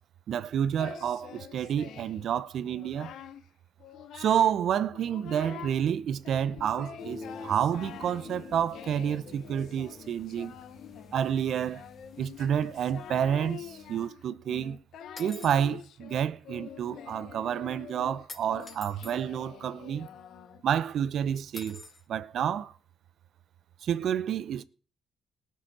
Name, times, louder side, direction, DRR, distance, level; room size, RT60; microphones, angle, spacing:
voice 1, 0.3-3.1 4.1-10.6 11.1-11.8 12.2-14.8 15.2-20.1 20.6-21.8 22.1-22.7 23.8-24.6, right 9 dB, 65° right, 0.7 m, -29 dB
Singing, 0.8-2.3 2.6-3.4 3.8-4.6 4.9-5.8 6.2-20.7, left 9 dB, 75° left, 0.7 m, -46 dB
sound 1, 7.0-14.1, left 3 dB, 60° left, 2.0 m, -49 dB
sound 2, 15.2-15.7 18.3-19.2 21.5-22.0, left 3 dB, 30° left, 1.7 m, -45 dB
19.0 x 6.9 x 4.3 m
cardioid pair, 90°, 0 cm